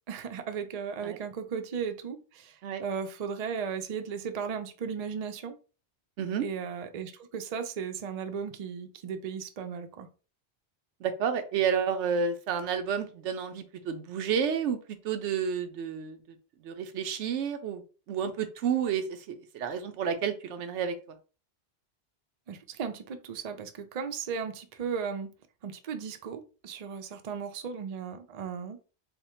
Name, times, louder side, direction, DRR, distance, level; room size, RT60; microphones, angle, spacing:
voice 1, 0.1-5.6 6.4-10.1 22.5-25.3 25.6-28.8, right 6 dB, 50° right, 0.5 m, -36 dB
voice 2, 11.0-14.8 15.0-16.2 16.6-17.8 18.1-20.9, right 7 dB, 90° right, 0.9 m, -30 dB
3.4 x 2.2 x 4.2 m
omnidirectional pair, 1.1 m